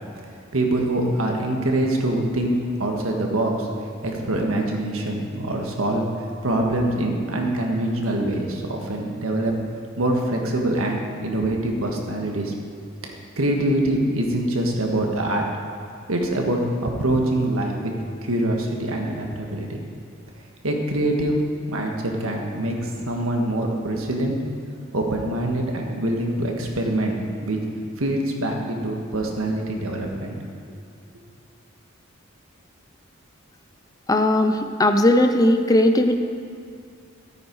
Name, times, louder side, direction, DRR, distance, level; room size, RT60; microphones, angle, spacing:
voice 1, 0.5-3.7 4.0-6.1 6.4-9.6 10.0-12.5 13.0-15.4 16.1-17.9 18.2-19.7 20.6-21.4 21.7-24.4 24.9-27.6 28.0-30.4, right 1 dB, 85° right, 1 dB, 1.6 m, -24 dB
voice 2, 34.1-36.2, left 1 dB, 15° left, 6 dB, 0.5 m, -18 dB
13.5 x 9.1 x 4.7 m, 2.4 s
head